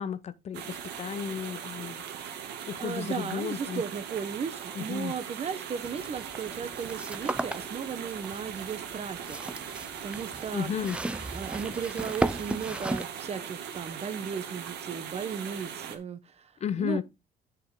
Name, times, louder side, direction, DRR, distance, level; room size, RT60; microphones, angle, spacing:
voice 1, 0.0-2.0 2.7-3.8 4.7-5.1 10.5-11.0 16.6-17.0, left 7 dB, 40° left, 0.7 m, -33 dB
sound 1, 0.5-16.0, right 8 dB, 80° right, 1.8 m, -40 dB
voice 2, 2.8-10.7 11.3-16.5 16.8-17.0, right 6 dB, 40° right, 1.0 m, -36 dB
sound 2, 5.8-13.1, right 1 dB, 5° right, 0.4 m, -36 dB
8.6 x 6.7 x 3.7 m
cardioid pair, 110°, 17 cm